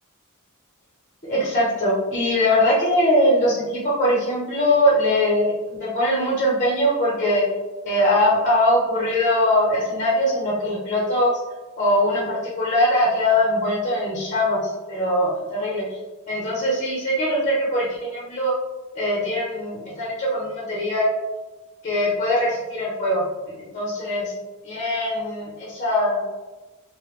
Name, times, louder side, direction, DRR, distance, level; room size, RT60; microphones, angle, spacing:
voice 1, 1.2-7.4 7.8-11.3 11.8-16.0 16.3-18.5 18.9-21.1 21.8-24.3 24.6-26.2, left 1 dB, 35° left, -5 dB, 0.8 m, -21 dB
3.3 x 2.2 x 3.1 m, 1.2 s
head